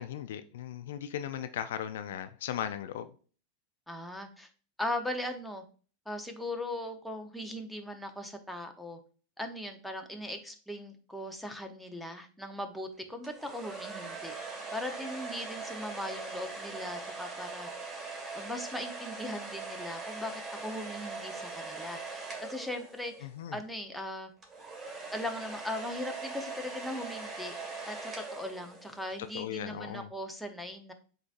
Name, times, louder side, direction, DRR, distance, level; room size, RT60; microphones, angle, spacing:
voice 1, 0.0-3.1 23.2-23.6 29.3-30.1, left 10 dB, 70° left, 0.3 m, -37 dB
voice 2, 3.9-4.5 4.8-5.6 6.1-9.0 9.4-14.3 14.7-17.7 18.3-24.3 25.1-27.5 27.9-30.9, left 1 dB, ahead, 0.9 m, -39 dB
sound 1, 13.2-23.4 24.4-29.1, right 3 dB, 25° right, 2.2 m, -41 dB
7.8 x 2.6 x 2.5 m
hypercardioid pair, 95°, 0 cm